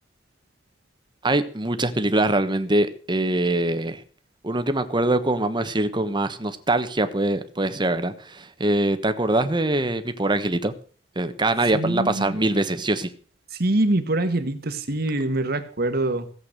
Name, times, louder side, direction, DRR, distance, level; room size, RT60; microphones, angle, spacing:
voice 1, 1.2-4.0 4.4-10.7 11.1-13.1, right 2 dB, 25° right, 1.2 m, -23 dB
voice 2, 11.7-12.4 13.6-16.3, right 2 dB, 60° right, 1.6 m, -24 dB
16.0 x 8.2 x 6.6 m
head